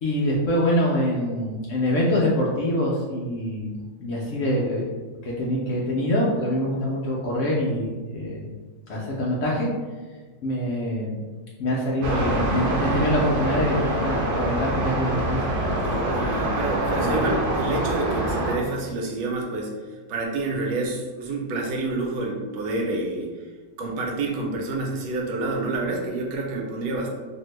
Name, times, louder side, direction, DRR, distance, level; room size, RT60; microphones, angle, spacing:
voice 1, 0.0-4.9 5.2-8.5 8.9-9.7 10.4-11.2 11.6-15.4 15.8-16.1 17.0-17.2, equal, 90° left, -5 dB, 0.6 m, -25 dB
sound 1, 12.0-18.6, right 1 dB, 75° right, 1.1 m, -25 dB
voice 2, 15.8-19.7 20.1-23.5 23.8-27.1, right 2 dB, 90° right, 0 dB, 1.3 m, -28 dB
2.8 x 2.6 x 3.1 m, 1.4 s
omnidirectional pair, 1.9 m